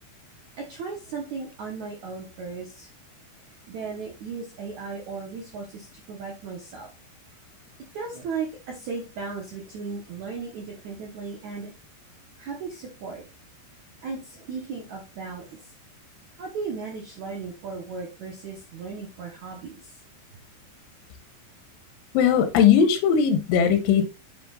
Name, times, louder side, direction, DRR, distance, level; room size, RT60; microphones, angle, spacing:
voice 1, 0.6-2.9 3.7-6.9 7.9-11.7 12.4-13.2 14.0-15.7 16.3-20.0, right 5 dB, 90° right, 1.6 m, -36 dB
voice 2, 22.1-24.1, left 7 dB, 90° left, 3.2 m, -19 dB
8.0 x 7.0 x 2.4 m
omnidirectional pair, 5.4 m